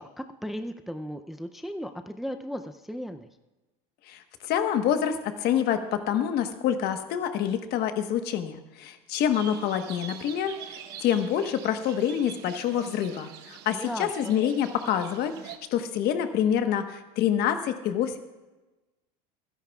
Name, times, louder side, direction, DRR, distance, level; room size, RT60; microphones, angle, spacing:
voice 1, 0.0-3.3 13.7-14.4, equal, ahead, 8 dB, 0.5 m, -36 dB
voice 2, 4.1-18.2, left 9 dB, 55° left, 7 dB, 1.2 m, -27 dB
sound 1, 9.3-15.6, right 10 dB, 60° right, 1.0 m, -44 dB
28.0 x 10.5 x 2.3 m, 1.1 s
supercardioid pair, 120°, 19 cm